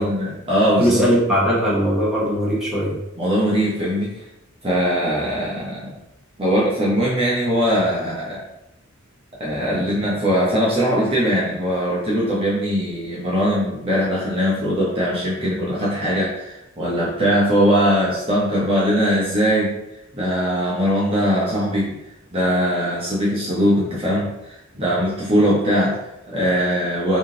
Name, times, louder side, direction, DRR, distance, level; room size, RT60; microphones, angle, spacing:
voice 1, 0.0-1.0 3.2-4.3 4.6-5.9 6.4-8.4 9.4-19.7 20.1-21.9 22.3-27.2, equal, 30° right, -7 dB, 0.8 m, -21 dB
voice 2, 0.8-3.0, equal, ahead, -8 dB, 1.3 m, -19 dB
3.5 x 2.7 x 3.7 m, 0.91 s
head